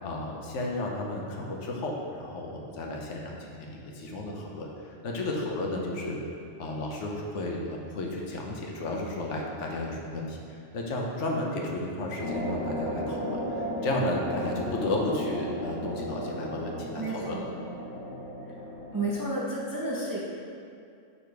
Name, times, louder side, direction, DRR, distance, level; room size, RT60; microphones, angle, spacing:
voice 1, 0.0-6.2 6.6-17.4, left 2 dB, 80° left, -1 dB, 1.1 m, -33 dB
sound 1, 12.2-19.1, equal, 35° left, 0.3 m, -35 dB
voice 2, 17.0-17.5 18.9-20.3, right 2 dB, 25° right, -5 dB, 0.4 m, -31 dB
5.0 x 4.1 x 4.6 m, 2.4 s
omnidirectional pair, 1.3 m